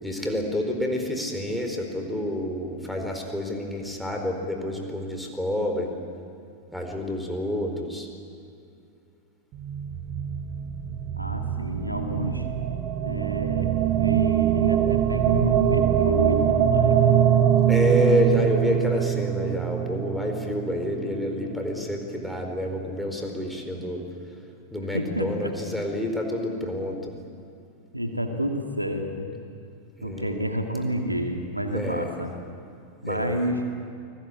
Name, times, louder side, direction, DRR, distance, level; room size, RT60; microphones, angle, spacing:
voice 1, 0.0-5.9 6.7-8.1 17.7-24.0 24.7-27.2 30.0-30.3 31.7-32.1 33.1-33.4, left 1 dB, ahead, 2 dB, 4.5 m, -28 dB
sound 1, 9.5-21.8, right 10 dB, 35° right, 1.2 m, -23 dB
voice 2, 11.2-12.4 13.0-17.2 24.9-25.5 27.9-29.3 30.0-32.3 33.0-33.7, equal, 85° right, 3 dB, 2.3 m, -29 dB
29.5 x 20.5 x 8.6 m, 2.4 s
figure-of-eight pair, 90°, 0 cm